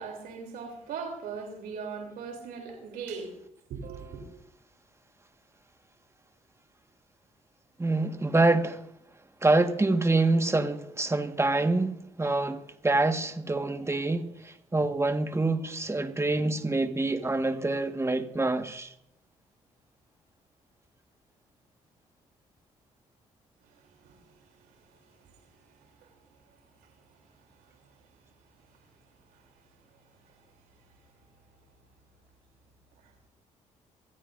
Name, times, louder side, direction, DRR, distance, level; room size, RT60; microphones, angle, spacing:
voice 1, 0.0-3.4 3.7-4.2 23.6-27.9 29.3-30.5, right 5 dB, 80° right, 3.2 m, -42 dB
voice 2, 7.8-8.8 9.4-18.9, right 2 dB, 20° right, 1.6 m, -26 dB
24.5 x 15.5 x 2.6 m
supercardioid pair, 55°, 15 cm